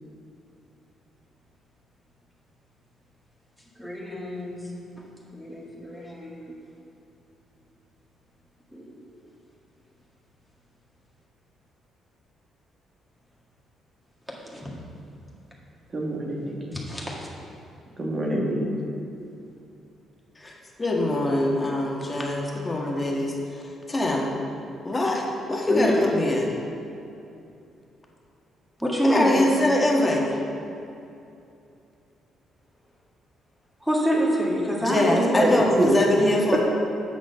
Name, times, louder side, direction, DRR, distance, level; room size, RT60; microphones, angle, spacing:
voice 1, 3.8-4.6 5.0-5.1 5.3-6.5 8.7-9.0 14.3-14.7 16.7-17.3 25.7-25.9 28.8-29.4 33.8-35.4, equal, 5° right, -4 dB, 1.8 m, -27 dB
voice 2, 15.9-16.6 18.0-18.7 35.1-35.5 35.8-36.0, right 1 dB, 40° right, -1 dB, 1.3 m, -25 dB
voice 3, 20.3-24.3 24.8-26.6 29.0-30.4 34.8-36.6, left 1 dB, 25° left, -1 dB, 1.5 m, -23 dB
7.9 x 6.3 x 5.4 m, 2.7 s
cardioid pair, 90°, 0 cm